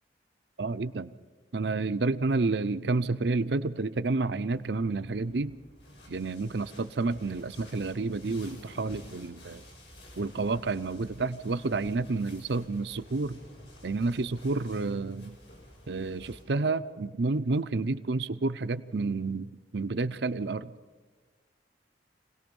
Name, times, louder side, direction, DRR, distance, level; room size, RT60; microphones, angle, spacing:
voice 1, 0.6-1.1 1.5-5.6 6.1-9.6 10.2-13.4 13.8-15.4 15.9-20.7, right 3 dB, 70° right, 12 dB, 0.6 m, -30 dB
sound 1, 4.5-16.4, equal, 75° left, 6.6 m, -51 dB
26.5 x 18.5 x 5.4 m, 1.4 s
head